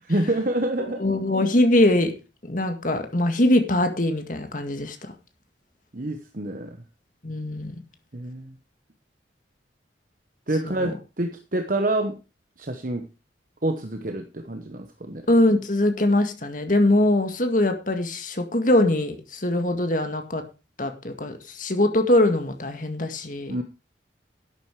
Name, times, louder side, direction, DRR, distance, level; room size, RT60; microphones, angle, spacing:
voice 1, 0.1-1.0 5.9-6.8 8.1-8.5 10.5-12.2 12.6-13.1 13.6-15.3 23.5-23.6, right 1 dB, 45° right, 1.1 m, -27 dB
voice 2, 1.0-2.1 2.5-5.1 7.2-7.8 10.6-10.9 15.3-20.4 20.8-23.5, left 1 dB, 45° left, 2.0 m, -22 dB
11.5 x 9.1 x 4.8 m
head